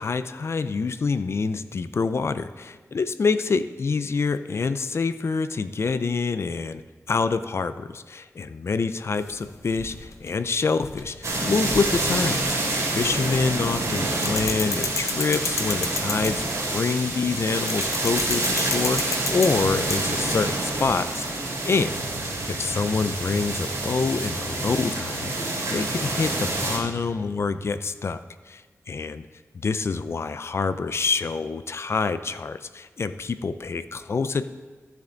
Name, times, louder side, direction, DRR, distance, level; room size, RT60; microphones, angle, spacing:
voice 1, 0.0-25.3 25.7-28.2 28.5-29.3 29.5-34.5, left 4 dB, 55° left, 12 dB, 0.5 m, -26 dB
sound 1, 9.2-13.3 13.6-16.6 17.7-20.4, left 4 dB, 70° left, 1.0 m, -32 dB
sound 2, 11.2-26.8, right 2 dB, 70° right, 2.9 m, -27 dB
sound 3, 21.8-27.7, equal, 5° right, 3.3 m, -40 dB
14.0 x 7.0 x 3.9 m, 1.5 s
wide cardioid pair, 115°, 5 cm